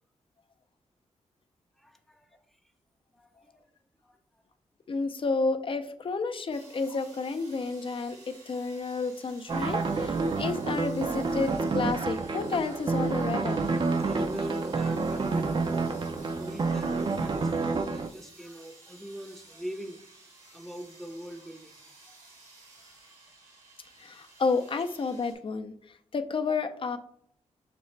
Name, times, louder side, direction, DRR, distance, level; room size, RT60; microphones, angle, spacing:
voice 1, 1.8-2.4 3.1-3.5 4.0-4.2 14.0-15.9 16.4-20.0 20.5-21.8 22.1-22.2, equal, ahead, 6 dB, 0.6 m, -42 dB
voice 2, 4.9-8.2 8.5-13.6 24.0-25.7 26.1-27.0, left 4 dB, 40° left, 9 dB, 0.5 m, -31 dB
sound 1, 6.5-25.3, right 2 dB, 90° right, 1.9 m, -54 dB
sound 2, 9.5-18.1, right 4 dB, 40° right, 0.5 m, -29 dB
6.5 x 2.4 x 3.2 m, 0.64 s
cardioid pair, 60°, 13 cm